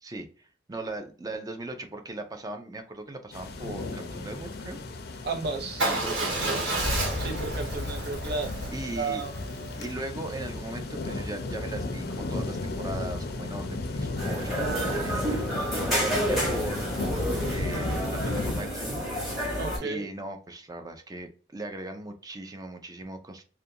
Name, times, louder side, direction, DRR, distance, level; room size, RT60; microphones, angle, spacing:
voice 1, 0.0-4.8 5.8-6.9 8.7-9.2 9.7-15.6 15.9-19.1 19.8-23.4, right 2 dB, 20° right, 6 dB, 0.4 m, -38 dB
sound 1, 3.3-18.6, left 2 dB, 60° left, 0.5 m, -34 dB
voice 2, 5.2-6.0 6.5-6.6 7.2-8.5 9.0-9.4 19.6-20.1, right 4 dB, 60° right, 3 dB, 0.7 m, -33 dB
Motorcycle / Engine starting / Idling, 5.8-9.9, right 1 dB, 80° right, 1.2 m, -31 dB
sound 2, 14.2-19.8, equal, ahead, 1.0 m, -29 dB
2.4 x 2.2 x 2.6 m, 0.40 s
head